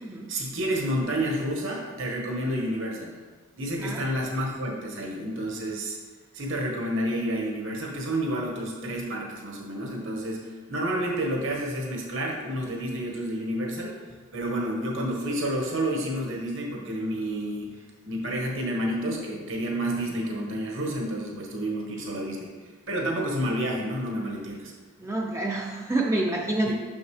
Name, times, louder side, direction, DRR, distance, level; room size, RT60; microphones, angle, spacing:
voice 1, 0.3-3.2 3.6-6.0 6.3-14.0 14.3-24.7 26.6-26.7, right 1 dB, 60° right, -1 dB, 1.2 m, -30 dB
voice 2, 25.0-26.7, right 2 dB, 15° right, -1 dB, 0.4 m, -27 dB
6.3 x 6.1 x 3.2 m, 1.4 s
head